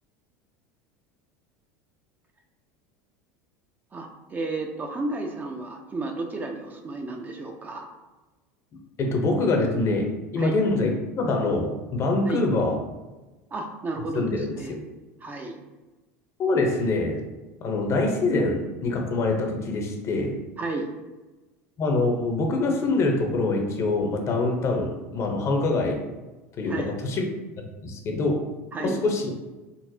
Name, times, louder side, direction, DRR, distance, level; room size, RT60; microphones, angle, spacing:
voice 1, 3.9-7.9 10.4-10.6 12.3-12.4 13.5-14.7 15.2-15.6 20.6-20.9 26.7-26.9 28.7-29.0, right 2 dB, 25° right, 3 dB, 0.5 m, -32 dB
voice 2, 9.0-12.8 14.1-14.8 16.4-17.2 17.6-20.4 21.8-26.0 26.6-27.3 27.6-28.4 28.8-29.3, left 2 dB, 40° left, 3 dB, 0.6 m, -25 dB
3.8 x 2.1 x 2.7 m, 1.2 s
hypercardioid pair, 95°, 7 cm